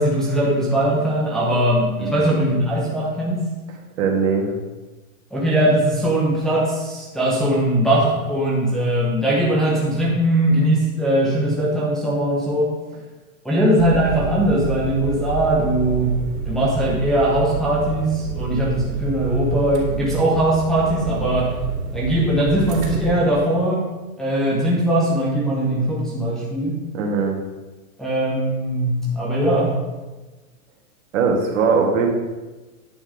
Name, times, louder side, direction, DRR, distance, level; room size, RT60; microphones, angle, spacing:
voice 1, 0.0-3.5 5.3-12.7 13.4-21.5 21.9-23.8 24.2-26.8 28.0-29.8, right 1 dB, ahead, -7 dB, 1.0 m, -20 dB
voice 2, 2.0-2.3 4.0-4.5 26.9-27.4 31.1-32.1, right 5 dB, 60° right, 0 dB, 2.3 m, -20 dB
sound 1, 13.8-23.1, right 7 dB, 85° right, 3.0 m, -29 dB
9.6 x 6.2 x 5.0 m, 1.2 s
supercardioid pair, 170°, 43 cm